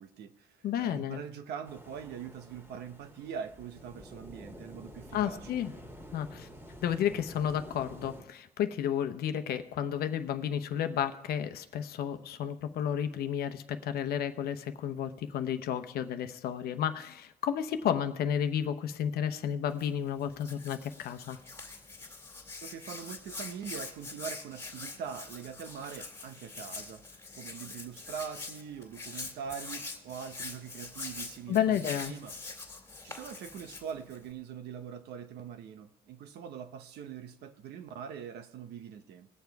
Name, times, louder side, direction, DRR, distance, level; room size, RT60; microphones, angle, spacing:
voice 1, 0.0-5.5 22.6-32.4 33.0-39.3, right 7 dB, 75° right, 0.9 m, -43 dB
voice 2, 0.6-1.2 5.1-5.7 6.1-6.5 6.8-21.4 31.5-32.1, left 9 dB, 65° left, 0.9 m, -32 dB
sound 1, 1.7-8.2, equal, 15° right, 1.9 m, -49 dB
Hands, 19.7-34.3, left 3 dB, 15° left, 2.2 m, -44 dB
19.5 x 7.0 x 4.7 m
cardioid pair, 110°, 17 cm